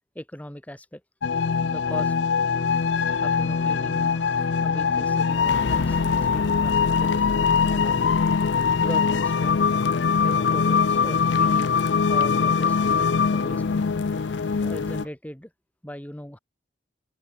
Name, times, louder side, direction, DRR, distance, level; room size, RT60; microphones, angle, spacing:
voice 1, 0.2-1.0 1.6-2.1 3.2-4.2 4.6-8.2 8.8-9.7 10.2-11.8 12.1-13.6 14.6-15.5 15.8-16.4, equal, 10° left, 1.8 m, -39 dB
sound 1, 1.2-15.0, left 5 dB, 85° left, 0.5 m, -22 dB
sound 2, 2.5-15.1, right 3 dB, 75° right, 1.8 m, -47 dB
Wind instrument woodwind instrument, 2.8-7.3, right 2 dB, 60° right, 3.8 m, -51 dB
open air
head